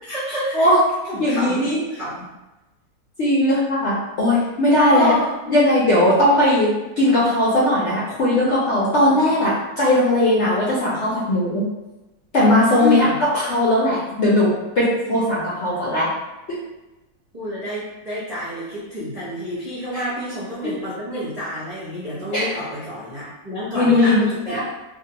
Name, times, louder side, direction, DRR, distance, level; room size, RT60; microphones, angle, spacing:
voice 1, 0.0-0.7 1.0-2.2 4.9-5.7 9.0-9.2 12.8-13.2 13.8-14.0 15.0-15.2 17.3-24.6, equal, 40° right, -11 dB, 0.6 m, -29 dB
voice 2, 1.2-1.8 3.2-5.1 5.5-6.7 7.0-11.6 12.3-13.1 13.5-14.5 14.8-16.1 20.6-20.7 22.3-22.5 23.7-24.2 24.5-24.6, left 1 dB, 60° left, -7 dB, 0.7 m, -18 dB
2.4 x 2.3 x 2.8 m, 1.0 s
omnidirectional pair, 1.7 m